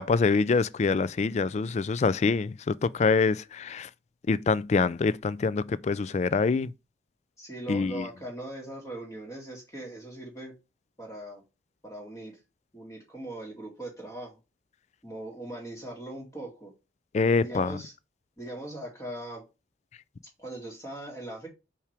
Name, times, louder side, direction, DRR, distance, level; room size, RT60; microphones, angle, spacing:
voice 1, 0.0-3.9 4.3-6.7 7.7-8.0 17.1-17.8, left 4 dB, 35° left, 0.3 m, -25 dB
voice 2, 7.4-10.5 11.0-11.4 11.8-12.4 12.7-14.4 15.0-16.7 17.4-17.9 18.4-19.4 20.4-21.5, right 1 dB, 15° left, 2.4 m, -40 dB
5.7 x 4.8 x 3.4 m
head